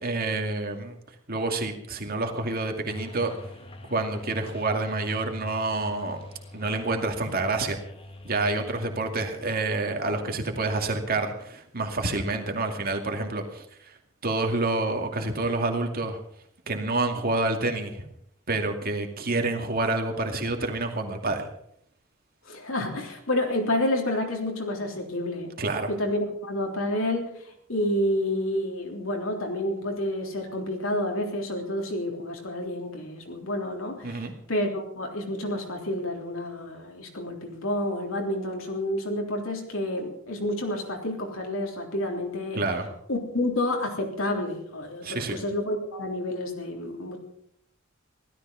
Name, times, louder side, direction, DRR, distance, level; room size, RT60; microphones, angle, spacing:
voice 1, 0.0-1.0 1.3-3.3 3.9-6.2 6.5-7.8 8.2-14.0 14.2-16.2 16.7-18.1 18.5-21.5 25.6-25.9 34.0-34.3 42.5-42.9 45.0-45.4, right 2 dB, 45° right, 4 dB, 2.4 m, -28 dB
sound 1, 2.9-9.3, left 1 dB, 25° left, 1.5 m, -43 dB
voice 2, 22.5-25.6 25.9-27.3 27.7-42.6 43.1-47.2, left 1 dB, 75° left, 1 dB, 3.6 m, -29 dB
16.5 x 13.5 x 5.7 m, 0.71 s
head